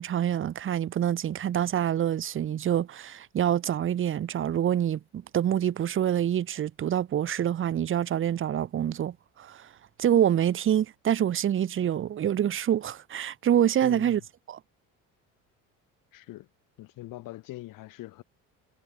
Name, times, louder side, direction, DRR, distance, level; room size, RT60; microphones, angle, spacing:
voice 1, 0.0-9.7 10.0-14.2 14.5-14.6, right 10 dB, 40° right, 0.9 m, -26 dB
voice 2, 13.8-14.2 16.1-16.5 16.8-18.2, left 17 dB, 70° left, 5.5 m, -42 dB
cardioid pair, 100°, 33 cm